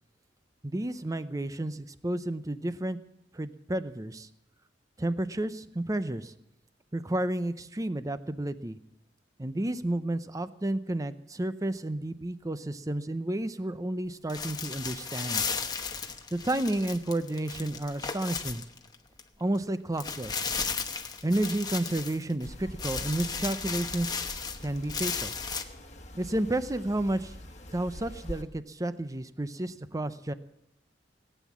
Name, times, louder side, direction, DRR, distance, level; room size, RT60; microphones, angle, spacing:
voice 1, 0.6-3.0 3.3-4.3 5.0-6.3 6.9-8.8 9.4-15.4 16.3-18.6 19.4-20.5 21.2-24.1 24.6-25.3 26.2-27.3 27.7-30.3, right 1 dB, 20° right, 12 dB, 0.6 m, -31 dB
sound 1, 14.3-19.2 19.6-19.7 20.0-22.5 22.8-25.6, left 5 dB, 20° left, 1.0 m, -35 dB
sound 2, 22.4-28.4, left 1 dB, 40° left, 1.5 m, -44 dB
18.5 x 9.3 x 7.3 m, 0.84 s
head